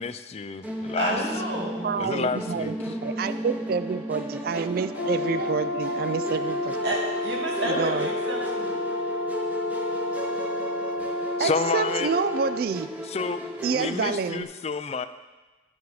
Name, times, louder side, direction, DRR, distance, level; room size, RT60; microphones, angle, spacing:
voice 1, 0.0-1.2 2.0-2.9 11.4-12.1 13.0-13.4 13.7-15.1, left 4 dB, 35° left, 11 dB, 0.4 m, -29 dB
Musical instrument, 0.6-14.4, equal, 10° right, 0.9 m, -35 dB
voice 2, 0.9-1.9 6.8-8.9, right 1 dB, 70° right, -2 dB, 2.3 m, -30 dB
voice 3, 1.8-6.8 7.6-8.1 9.4-9.5 10.0-10.4 11.4-12.9 13.6-14.5, right 5 dB, 55° right, 13 dB, 0.3 m, -28 dB
Brass instrument, 4.9-12.7, left 2 dB, 75° left, 0.9 m, -30 dB
11.5 x 7.1 x 4.8 m, 1.2 s
head